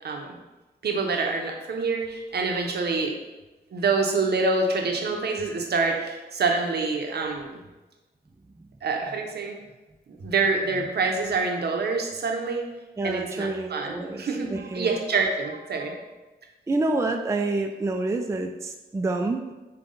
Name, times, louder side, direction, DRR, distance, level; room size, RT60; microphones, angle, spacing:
voice 1, 0.0-0.4 0.8-3.1 3.7-7.5 8.8-9.6 10.2-12.6 13.0-15.9, right 4 dB, 65° right, 2 dB, 0.7 m, -26 dB
voice 2, 13.0-14.2 14.5-15.0 16.7-19.5, right 2 dB, 15° right, 4 dB, 0.4 m, -28 dB
5.3 x 2.3 x 3.7 m, 1.1 s
cardioid pair, 70°, 18 cm